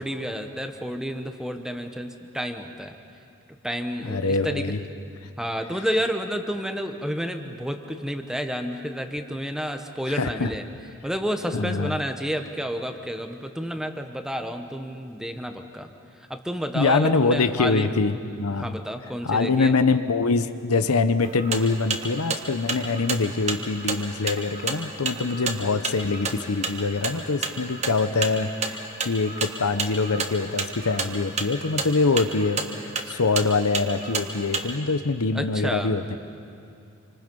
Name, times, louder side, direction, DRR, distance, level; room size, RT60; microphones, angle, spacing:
voice 1, 0.0-3.0 3.6-4.2 4.4-4.8 5.4-10.6 11.0-15.9 16.3-17.9 18.6-19.8 35.3-35.9, equal, 5° right, 6 dB, 1.0 m, -30 dB
voice 2, 4.0-4.8 10.1-10.5 11.5-12.0 16.7-18.8 19.2-36.2, left 3 dB, 80° left, 11 dB, 0.9 m, -24 dB
sound 1, 21.2-34.7, right 4 dB, 30° right, 1.5 m, -30 dB
27.5 x 25.5 x 5.4 m, 2.5 s
head